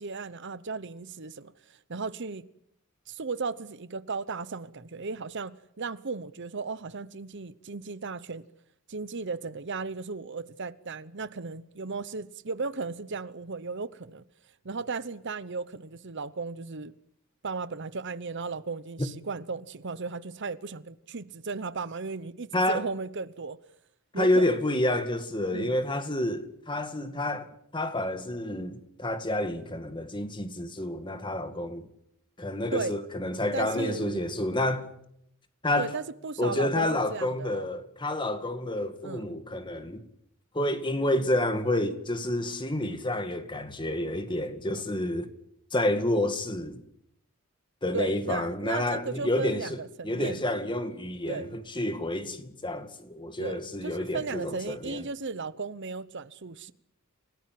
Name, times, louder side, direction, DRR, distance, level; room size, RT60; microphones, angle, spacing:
voice 1, 0.0-2.5 3.1-8.5 8.9-14.2 14.6-16.9 17.4-23.6 24.1-24.5 25.5-25.7 32.7-32.9 33.5-34.2 35.8-37.7 39.0-39.4 44.7-44.9 47.9-50.5 51.3-51.6 53.4-56.7, right 4 dB, 55° right, 0.9 m, -36 dB
voice 2, 22.5-22.8 24.2-31.9 32.4-34.9 35.6-35.9 36.4-40.0 40.5-45.3 45.7-46.8 47.8-55.0, left 1 dB, 20° left, 2.1 m, -29 dB
29.5 x 18.5 x 7.7 m
head